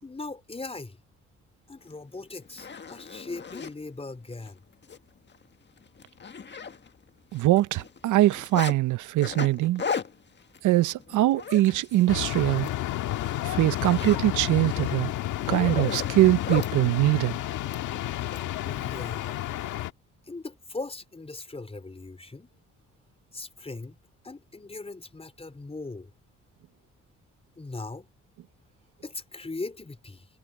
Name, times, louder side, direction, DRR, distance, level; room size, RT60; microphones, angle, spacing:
voice 1, 0.0-1.0 1.7-4.6 18.6-19.4 20.3-22.5 23.3-24.0 24.2-26.1 27.6-28.1 29.0-30.3, left 3 dB, 20° left, 4.2 m, -39 dB
Zipper (clothing), 1.9-2.0 2.4-3.7 4.3-4.5 4.8-5.0 5.3-5.4 5.8-7.1 7.3-8.8 9.2-12.1 12.5-12.7 13.1-16.7 17.7-18.4, left 6 dB, 35° left, 1.6 m, -36 dB
voice 2, 7.3-9.8 10.6-12.7 13.4-15.1 15.5-17.3, right 16 dB, 80° right, 0.7 m, -22 dB
sound 1, 12.1-19.9, left 13 dB, 85° left, 1.5 m, -31 dB
cardioid pair, 90°, 30 cm